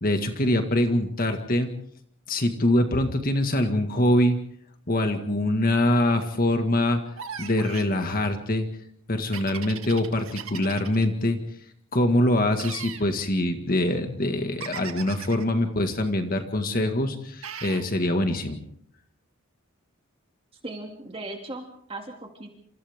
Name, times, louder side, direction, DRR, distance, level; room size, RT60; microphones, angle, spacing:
voice 1, 0.0-1.7 2.3-4.4 4.9-7.0 7.4-8.7 9.1-11.4 11.9-18.6, left 1 dB, 40° left, 5 dB, 1.8 m, -24 dB
sound 1, 7.2-7.9 9.3-11.0 12.6-13.1 14.6-15.4 17.4-17.9, right 7 dB, 70° right, 2.1 m, -38 dB
voice 2, 20.6-22.5, right 2 dB, 25° right, 2 dB, 2.5 m, -38 dB
28.5 x 27.5 x 3.7 m, 0.67 s
head